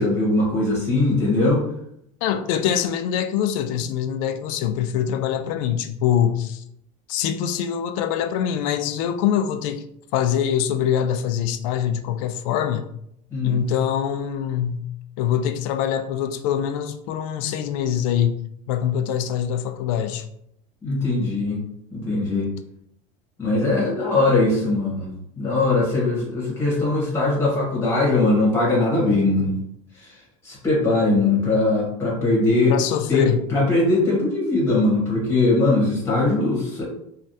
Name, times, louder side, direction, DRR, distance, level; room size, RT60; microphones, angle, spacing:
voice 1, 0.0-1.6 13.3-13.6 20.8-21.6 21.9-22.5 23.4-29.5 30.0-30.2 30.4-32.8 33.1-36.8, left 2 dB, 15° left, 1.3 m, -21 dB
voice 2, 2.2-6.6 7.1-9.8 10.1-12.9 13.4-14.9 15.2-18.4 18.7-20.3 32.7-33.4, left 9 dB, 70° left, 0.4 m, -24 dB
3.2 x 2.4 x 2.7 m
cardioid pair, 160°, 18 cm